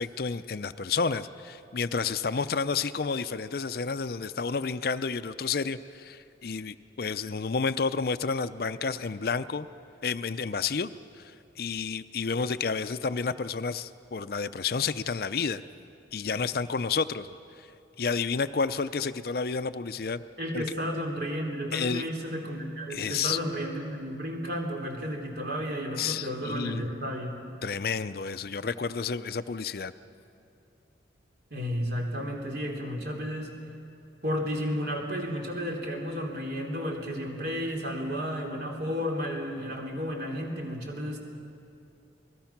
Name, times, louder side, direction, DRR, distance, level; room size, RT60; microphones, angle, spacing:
voice 1, 0.0-9.7 10.0-15.6 16.1-17.3 18.0-20.2 20.5-20.6 21.7-22.1 22.9-23.4 26.0-26.9 27.6-29.9, left 5 dB, 55° left, 13 dB, 0.5 m, -30 dB
voice 2, 20.4-27.4 31.5-33.6 34.2-41.2, equal, 60° right, 1 dB, 3.4 m, -32 dB
27.5 x 20.0 x 5.9 m, 2.6 s
head